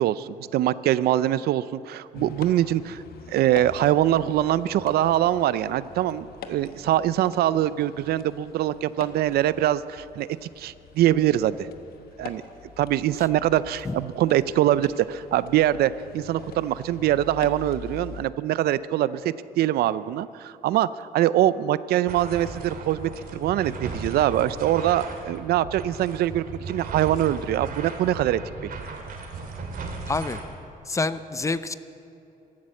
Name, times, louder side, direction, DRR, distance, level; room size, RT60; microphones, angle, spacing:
voice 1, 0.0-3.0 3.3-11.7 12.2-12.4 12.8-28.4, right 13 dB, 90° right, 17 dB, 0.5 m, -23 dB
sound 1, 2.1-18.2, left 6 dB, 80° left, 1.1 m, -44 dB
sound 2, 22.1-30.4, right 3 dB, 65° right, 2.5 m, -36 dB
voice 2, 30.1-30.4 30.9-31.7, left 3 dB, 20° left, 13 dB, 0.6 m, -27 dB
14.5 x 12.5 x 7.6 m, 2.9 s
cardioid pair, 105°, 16 cm